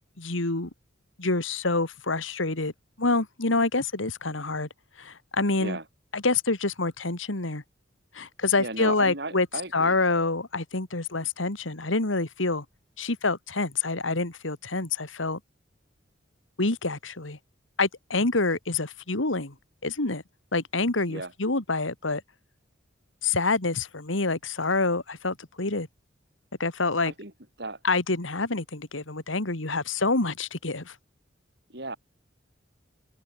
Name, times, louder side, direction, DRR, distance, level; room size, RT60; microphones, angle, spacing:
voice 1, 0.2-0.7 1.2-2.7 3.0-4.7 5.0-5.8 6.1-7.6 8.1-9.5 9.7-12.6 13.0-15.4 16.6-17.4 17.8-19.5 19.8-20.2 20.5-22.2 23.2-25.9 26.6-27.1 27.8-30.9, left 3 dB, 90° left, 2.5 m, -27 dB
voice 2, 8.6-10.0 21.1-21.3 27.0-27.3 27.6-27.8 31.7-32.0, right 2 dB, 60° right, 6.4 m, -35 dB
head